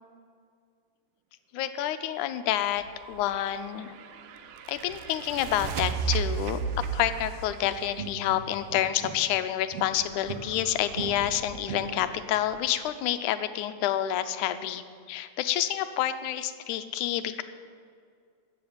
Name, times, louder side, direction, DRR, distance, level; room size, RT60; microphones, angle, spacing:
voice 1, 1.5-3.9 4.7-6.6 6.9-17.4, left 12 dB, 80° left, 11 dB, 2.1 m, -28 dB
sound 1, 2.7-7.4 9.8-12.6, equal, 40° right, 1.9 m, -49 dB
sound 2, 3.2-9.0, right 6 dB, 85° right, 2.3 m, -34 dB
sound 3, 7.6-9.4 9.7-12.3, right 5 dB, 65° right, 1.8 m, -40 dB
13.0 x 8.1 x 8.7 m, 2.2 s
omnidirectional pair, 3.5 m